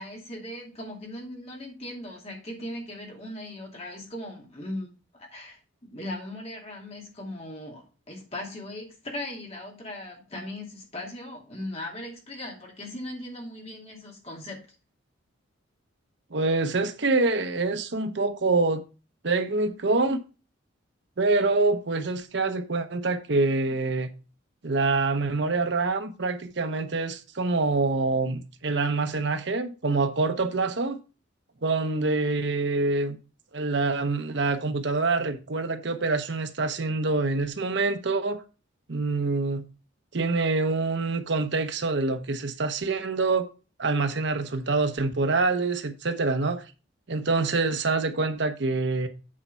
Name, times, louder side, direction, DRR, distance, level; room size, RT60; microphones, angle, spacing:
voice 1, 0.0-4.9 5.1-14.6, left 1 dB, 30° left, 2.6 m, -38 dB
voice 2, 16.3-18.8 19.2-20.2 21.2-24.1 24.6-31.0 31.6-33.2 33.5-38.4 38.9-39.7 40.1-43.5 43.8-46.6 47.1-49.1, right 3 dB, 60° right, 0.9 m, -26 dB
8.6 x 4.4 x 5.6 m
head